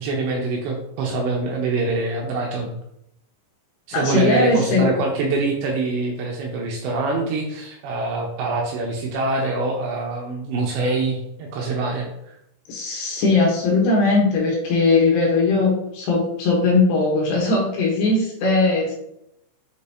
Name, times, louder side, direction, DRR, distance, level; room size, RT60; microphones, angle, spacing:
voice 1, 0.0-2.7 3.9-12.4, right 3 dB, 80° right, 0 dB, 2.8 m, -25 dB
voice 2, 3.9-4.9 12.7-18.9, left 3 dB, 70° left, -2 dB, 3.0 m, -19 dB
6.9 x 5.1 x 2.8 m, 0.78 s
omnidirectional pair, 5.7 m